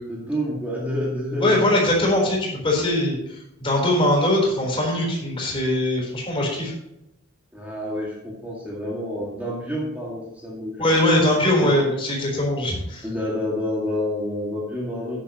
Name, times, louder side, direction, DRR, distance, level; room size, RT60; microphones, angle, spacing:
voice 1, 0.1-1.6 7.5-10.9 11.1-11.7 13.0-15.2, left 1 dB, 10° right, -6 dB, 2.2 m, -28 dB
voice 2, 1.4-6.7 10.8-13.1, left 1 dB, 25° left, -2 dB, 4.1 m, -21 dB
13.0 x 10.5 x 3.1 m, 0.86 s
head